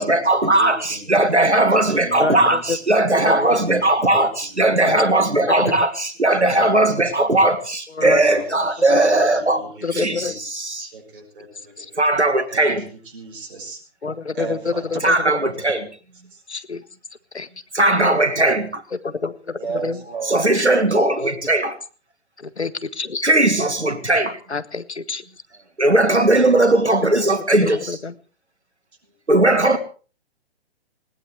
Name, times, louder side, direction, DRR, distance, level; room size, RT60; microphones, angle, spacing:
voice 1, 0.0-9.6 9.9-10.9 12.0-12.8 15.0-15.9 17.7-18.8 20.2-21.8 23.2-24.4 25.8-28.0 29.3-29.8, right 2 dB, 90° right, 9 dB, 1.7 m, -18 dB
voice 2, 0.6-2.8 3.2-5.1 5.4-5.7 6.3-7.4 8.0-10.4 10.8-12.1 12.5-13.8 14.3-15.2 15.6-15.7 16.3-16.4 19.6-20.5 25.5-25.7 29.0-29.1, right 4 dB, 50° right, 3 dB, 6.1 m, -36 dB
voice 3, 2.1-2.8 3.2-3.3 4.8-5.0 5.5-5.8 8.0-8.2 8.9-9.0 9.8-10.4 11.8-11.9 14.0-15.1 16.5-16.8 17.3-17.5 19.0-20.0 22.4-23.2 24.5-25.2 27.6-28.1, left 4 dB, 80° left, 15 dB, 1.3 m, -27 dB
20.5 x 18.0 x 3.3 m, 0.37 s
figure-of-eight pair, 125°, 33 cm